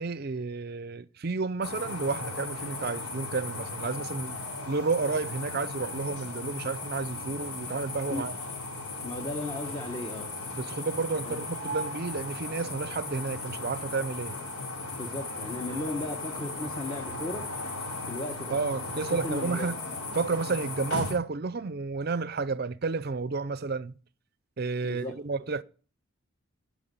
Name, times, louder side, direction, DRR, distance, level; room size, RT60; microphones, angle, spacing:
voice 1, 0.0-4.4 4.7-8.3 10.6-14.4 18.5-19.8 20.1-23.9 24.6-25.6, right 4 dB, 45° right, 0.5 m, -31 dB
sound 1, 1.6-21.1, left 2 dB, 85° left, 4.1 m, -37 dB
voice 2, 9.0-10.3 11.2-11.4 15.0-17.4 18.1-18.6 18.9-19.7 24.8-25.2, left 2 dB, 20° left, 1.2 m, -35 dB
18.5 x 6.3 x 5.4 m
head